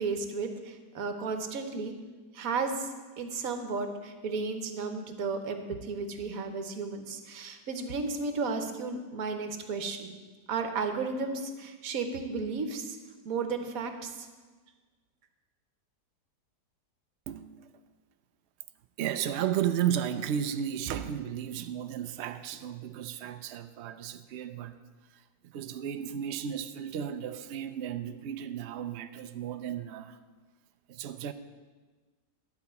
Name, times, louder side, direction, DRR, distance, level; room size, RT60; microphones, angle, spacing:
voice 1, 0.0-1.9 2.3-10.1 10.5-13.0 13.2-14.3, right 4 dB, 60° right, 1.3 m, -34 dB
voice 2, 17.3-17.7 19.0-24.8 25.4-30.2 30.9-31.3, right 9 dB, 85° right, 0.6 m, -34 dB
12.0 x 4.8 x 8.2 m
omnidirectional pair, 1.8 m